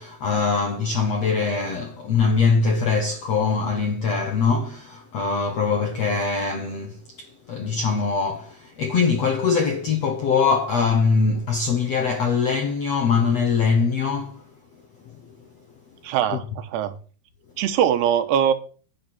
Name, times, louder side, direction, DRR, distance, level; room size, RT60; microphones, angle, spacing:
voice 1, 0.0-14.4 15.0-15.2, left 5 dB, 70° left, 1.6 m, -22 dB
voice 2, 16.0-17.0 17.6-18.5, right 9 dB, 80° right, 2.9 m, -21 dB
9.7 x 6.4 x 8.6 m
omnidirectional pair, 4.9 m